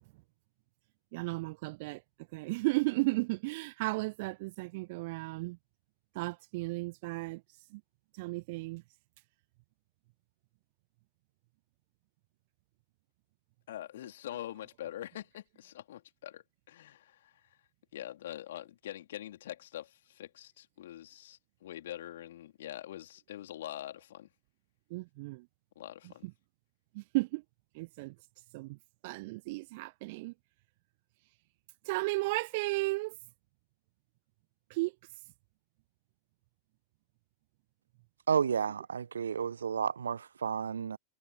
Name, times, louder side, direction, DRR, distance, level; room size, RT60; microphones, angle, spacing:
voice 1, 1.1-2.0 2.3-5.6 6.1-7.4 7.7-7.8 8.2-8.8 24.9-25.5 26.2-26.3 26.9-27.4 27.7-28.1 28.5-28.8 29.0-30.3 31.9-33.2 34.7-34.9, right 23 dB, 50° right, 0.3 m, -34 dB
voice 2, 13.7-17.5 17.9-24.3 25.8-26.3, left 12 dB, 60° left, 3.6 m, -44 dB
voice 3, 38.3-41.0, right 7 dB, 70° right, 1.1 m, -31 dB
figure-of-eight pair, 90°, 0 cm